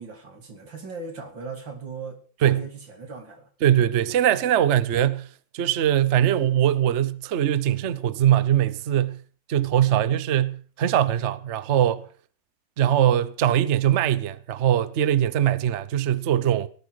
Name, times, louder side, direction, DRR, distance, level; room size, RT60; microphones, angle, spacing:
voice 1, 0.0-3.5, right 4 dB, 85° right, 3.3 m, -38 dB
voice 2, 3.6-5.3 5.5-9.2 9.5-12.1 12.8-16.7, right 10 dB, 55° right, 0.8 m, -21 dB
18.5 x 12.5 x 4.8 m
omnidirectional pair, 2.0 m